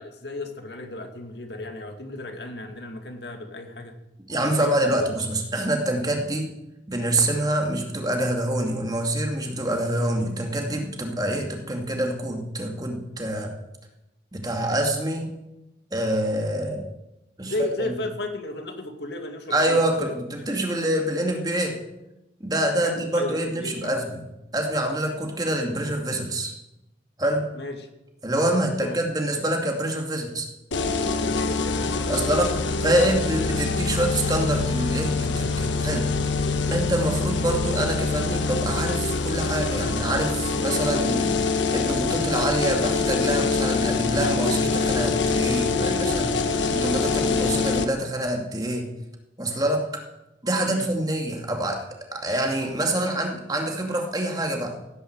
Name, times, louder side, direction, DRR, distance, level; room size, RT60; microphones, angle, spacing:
voice 1, 0.0-3.9 4.4-4.9 17.4-20.1 22.8-23.9 27.5-27.9 28.6-29.0 31.2-32.3 50.6-50.9, left 2 dB, 60° left, 5 dB, 2.3 m, -34 dB
voice 2, 4.3-6.5 6.9-13.5 14.3-15.3 15.9-16.9 17.4-17.5 17.9-18.0 19.5-21.8 22.4-24.2 24.5-26.5 27.2-27.5 28.2-30.5 32.1-36.1 36.7-48.9 49.4-50.0 50.4-54.9, right 1 dB, 20° right, 2 dB, 2.4 m, -26 dB
sound 1, 30.7-47.8, left 4 dB, 80° left, 1.4 m, -25 dB
16.5 x 10.0 x 8.0 m, 0.92 s
head